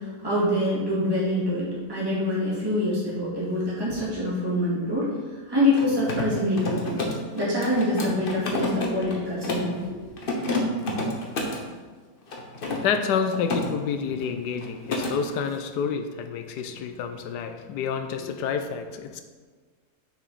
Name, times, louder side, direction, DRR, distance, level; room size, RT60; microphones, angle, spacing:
voice 1, 0.0-5.1 5.5-7.0 7.3-10.1, left 1 dB, 15° right, 2.2 m, -25 dB
Mechanisms, 5.6-9.8 10.2-11.7 12.3-13.7 14.0-14.3 14.6-15.1, left 2 dB, 40° left, 0.9 m, -30 dB
voice 2, 12.6-19.2, left 6 dB, 85° left, 1.2 m, -29 dB
6.4 x 5.9 x 4.0 m
omnidirectional pair, 1.8 m